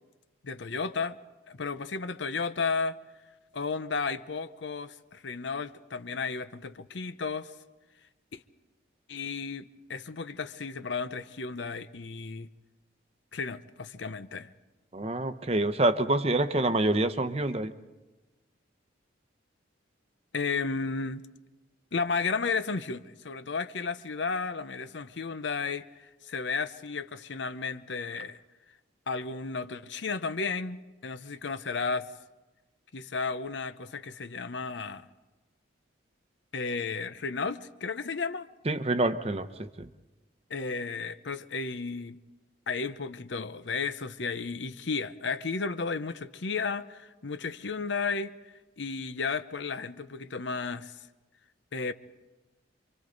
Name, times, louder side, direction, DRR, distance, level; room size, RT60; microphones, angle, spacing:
voice 1, 0.4-1.2 1.5-3.0 3.5-7.5 8.3-8.4 9.1-12.5 13.3-14.5 20.3-21.2 21.9-25.9 26.3-28.4 29.1-32.1 32.9-35.1 36.5-38.5 40.5-42.2 42.7-48.3 48.8-50.9 51.7-51.9, left 4 dB, 70° left, 0.8 m, -33 dB
voice 2, 14.9-17.7 38.6-39.9, right 2 dB, 30° right, 0.8 m, -27 dB
28.0 x 24.5 x 4.0 m
head